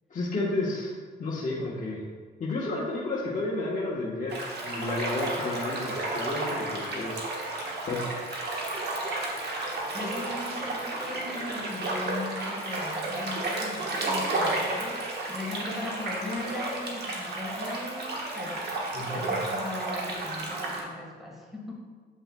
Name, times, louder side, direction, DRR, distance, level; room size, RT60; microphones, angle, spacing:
voice 1, 0.1-0.9 1.2-2.0 2.4-7.1 7.4-7.5 7.8-8.6 18.9-19.1, left 2 dB, 40° left, -6 dB, 1.0 m, -32 dB
sound 1, 4.3-20.8, right 2 dB, 55° right, 1.3 m, -32 dB
voice 2, 9.9-18.8 19.0-21.7, left 2 dB, ahead, -2 dB, 1.5 m, -38 dB
7.8 x 5.4 x 2.2 m, 1.5 s
cardioid pair, 90°, 20 cm